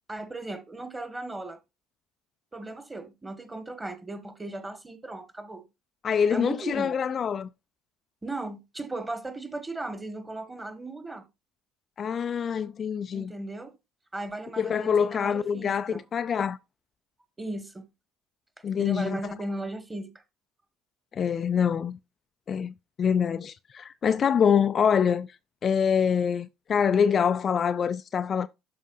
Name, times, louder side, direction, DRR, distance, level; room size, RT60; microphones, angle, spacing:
voice 1, 0.1-1.6 2.5-5.7 6.3-6.9 8.2-11.2 13.1-13.7 14.1-16.0 17.4-17.8 18.8-20.1, right 2 dB, 15° right, 1.5 m, -36 dB
voice 2, 6.0-7.5 12.0-13.3 14.6-16.6 18.6-19.2 21.1-22.0 22.5-25.3 25.6-28.5, left 7 dB, 40° left, 0.3 m, -25 dB
12.5 x 4.3 x 2.5 m
figure-of-eight pair, 60°, 0 cm